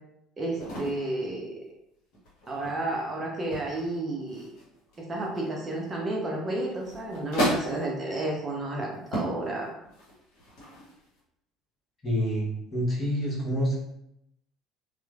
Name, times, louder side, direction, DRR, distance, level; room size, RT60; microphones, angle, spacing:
voice 1, 0.4-1.5 2.5-4.5 5.0-9.7, right 2 dB, 30° right, -2 dB, 0.6 m, -31 dB
sound 1, 0.6-1.1 2.1-3.1 3.5-4.0 4.3-5.9 6.6-8.0 8.6-8.7 9.0-9.4 9.8-11.2, equal, 60° left, 0.9 m, -33 dB
voice 2, 12.0-13.8, equal, 30° left, -5 dB, 1.1 m, -27 dB
3.0 x 2.1 x 2.3 m, 0.80 s
figure-of-eight pair, 60°, 0 cm